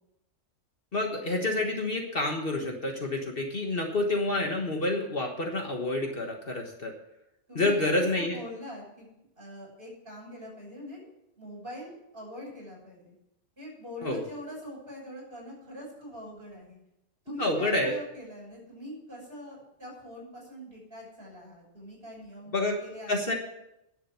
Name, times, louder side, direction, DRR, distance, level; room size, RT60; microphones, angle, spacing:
voice 1, 0.9-6.9 7.5-8.4 14.0-14.2 17.4-18.0 22.5-22.8 23.1-23.3, left 2 dB, 45° left, 2 dB, 1.6 m, -28 dB
voice 2, 7.5-11.0 11.4-13.1 13.6-16.8 17.2-23.3, equal, 45° right, -3 dB, 6.5 m, -43 dB
10.0 x 7.3 x 9.1 m, 0.85 s
omnidirectional pair, 1.3 m